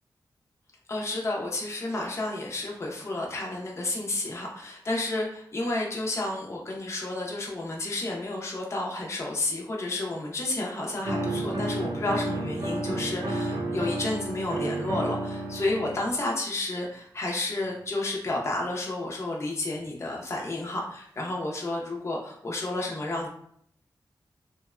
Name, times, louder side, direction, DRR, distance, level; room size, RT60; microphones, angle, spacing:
voice 1, 0.9-23.3, left 2 dB, 35° left, -2 dB, 0.5 m, -31 dB
sound 1, 11.0-16.1, right 1 dB, 75° right, 0.7 m, -31 dB
2.8 x 2.1 x 2.3 m, 0.65 s
wide cardioid pair, 105°, 8 cm